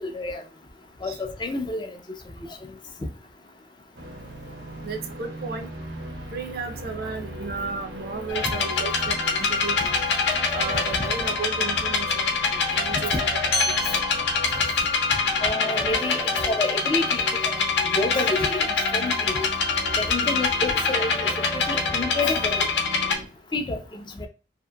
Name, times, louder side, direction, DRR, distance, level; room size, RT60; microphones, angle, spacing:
voice 1, 0.0-0.4 1.0-2.0 8.4-8.5 11.0-11.1 12.9-13.0 13.9-14.0 15.4-19.5 20.0-22.7 23.5-24.3, left 2 dB, 25° left, 0.4 m, -29 dB
sound 1, 4.0-23.3, equal, 85° right, 0.9 m, -38 dB
voice 2, 4.8-5.7 6.3-10.0 10.5-14.0, right 4 dB, 60° right, 0.5 m, -34 dB
sound 2, 8.3-23.1, left 4 dB, 80° left, 0.7 m, -25 dB
sound 3, 13.5-18.3, left 2 dB, 50° left, 0.8 m, -35 dB
2.8 x 2.5 x 2.2 m
head